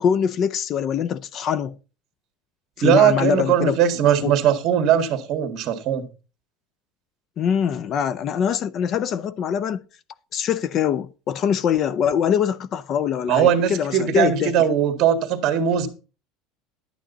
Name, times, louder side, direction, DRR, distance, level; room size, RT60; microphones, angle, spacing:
voice 1, 0.0-1.8 2.8-3.8 4.2-4.3 7.4-9.8 10.3-14.5, left 8 dB, 35° left, 0.5 m, -23 dB
voice 2, 2.8-6.0 13.3-15.9, right 9 dB, 40° right, 1.8 m, -19 dB
11.5 x 9.1 x 4.0 m
cardioid pair, 160°, 0 cm